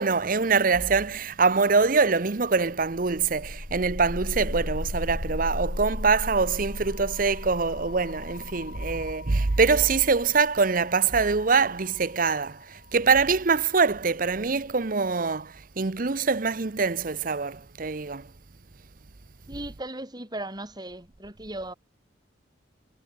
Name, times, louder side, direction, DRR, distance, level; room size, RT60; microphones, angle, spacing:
voice 1, 0.0-18.3, right 4 dB, 45° right, 0.8 m, -24 dB
sound 1, 2.7-12.5, left 1 dB, 75° left, 2.1 m, -36 dB
voice 2, 19.5-21.7, right 1 dB, 20° right, 6.8 m, -37 dB
head